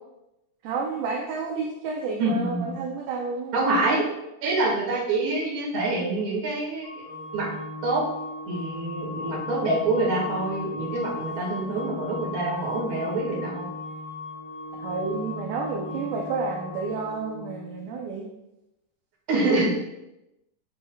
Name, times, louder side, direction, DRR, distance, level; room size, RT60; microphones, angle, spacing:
voice 1, 0.6-3.5 14.8-18.3, right 4 dB, 85° right, 0 dB, 2.1 m, -30 dB
voice 2, 2.2-2.8 3.5-4.0 4.4-7.0 7.3-7.5 7.8-8.0 8.5-13.7 15.9-16.0 19.3-19.7, right 2 dB, 45° right, -4 dB, 1.8 m, -26 dB
sound 1, 6.8-16.9, left 4 dB, 80° left, 4.7 m, -39 dB
Organ, 7.0-18.0, left 1 dB, 45° left, 2.0 m, -40 dB
8.5 x 6.1 x 2.3 m, 0.92 s
omnidirectional pair, 4.9 m